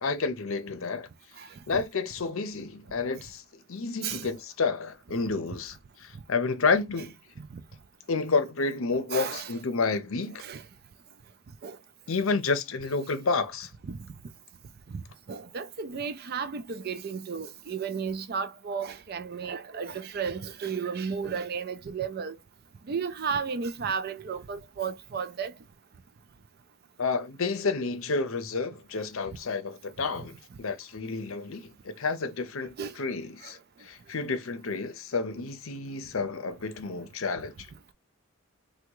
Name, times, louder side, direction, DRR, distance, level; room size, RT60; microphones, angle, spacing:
voice 1, 0.0-1.1 1.7-3.4 3.7-7.1 8.1-10.4 12.1-13.7 27.0-37.7, left 4 dB, 65° left, 0.6 m, -30 dB
voice 2, 9.1-9.5 10.4-10.6 11.6-11.8 13.8-14.0 15.3-22.4 22.9-25.5 32.8-32.9 33.4-33.5, right 6 dB, 45° right, 0.4 m, -33 dB
3.5 x 2.3 x 2.9 m
head